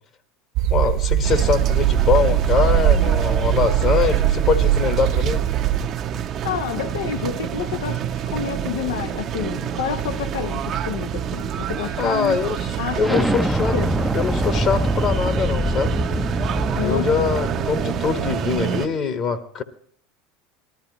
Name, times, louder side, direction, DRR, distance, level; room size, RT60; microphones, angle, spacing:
sound 1, 0.6-5.8, right 11 dB, 65° right, 1.3 m, -20 dB
voice 1, 0.7-5.4 12.0-12.7 13.0-13.7 14.1-15.9 16.8-19.6, left 6 dB, 45° left, 1.2 m, -23 dB
sound 2, 1.2-18.9, right 9 dB, 45° right, 0.8 m, -28 dB
voice 2, 6.4-12.4 12.8-13.3 13.6-13.9 16.8-17.1, left 8 dB, 80° left, 0.6 m, -29 dB
Explosion, 13.0-18.5, equal, 5° right, 0.5 m, -24 dB
19.0 x 13.0 x 3.0 m
hypercardioid pair, 90°, 0 cm